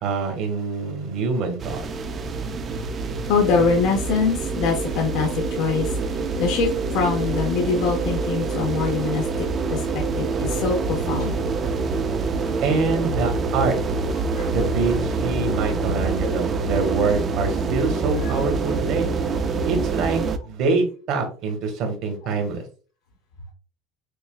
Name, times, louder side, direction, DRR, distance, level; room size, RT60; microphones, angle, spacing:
voice 1, 0.0-1.8 12.6-13.8 14.5-19.1 19.6-22.6, right 4 dB, 60° right, 4 dB, 1.4 m, -25 dB
sound 1, 1.6-20.4, right 4 dB, 30° right, 0.5 m, -26 dB
voice 2, 3.3-11.4 12.4-12.5 14.3-14.5 15.5-15.6 17.0-17.1 17.6-17.7 18.1-18.3, left 5 dB, 70° left, 1 dB, 1.0 m, -24 dB
6.8 x 2.3 x 2.2 m, 0.37 s
supercardioid pair, 125°, 0 cm